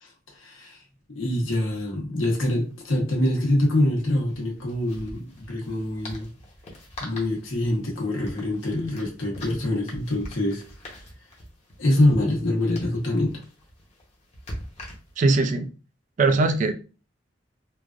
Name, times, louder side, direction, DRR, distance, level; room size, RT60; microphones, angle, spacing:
voice 1, 0.0-0.8 1.1-6.3 7.0-10.6 11.8-13.3, left 1 dB, 90° left, 1.0 m, -25 dB
sound 1, 2.2-2.3 2.6-2.7 4.2-15.4, equal, 35° left, 0.8 m, -43 dB
voice 2, 15.2-15.7 16.2-16.7, right 3 dB, 40° right, 0.3 m, -20 dB
3.1 x 2.4 x 2.3 m
head